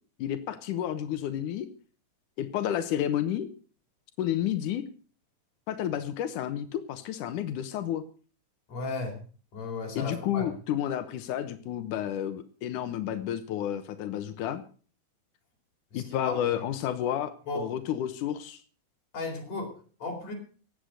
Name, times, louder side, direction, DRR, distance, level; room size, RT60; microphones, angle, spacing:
voice 1, 0.2-1.7 2.4-3.5 4.2-4.9 5.7-8.0 10.0-14.6 15.9-18.6, left 10 dB, 90° left, 11 dB, 2.6 m, -31 dB
voice 2, 8.7-9.2 9.5-10.5 15.9-16.6 17.5-17.7 19.1-19.7 20.0-20.3, left 3 dB, 60° left, 2 dB, 5.3 m, -35 dB
16.5 x 10.0 x 6.5 m, 0.41 s
omnidirectional pair, 3.5 m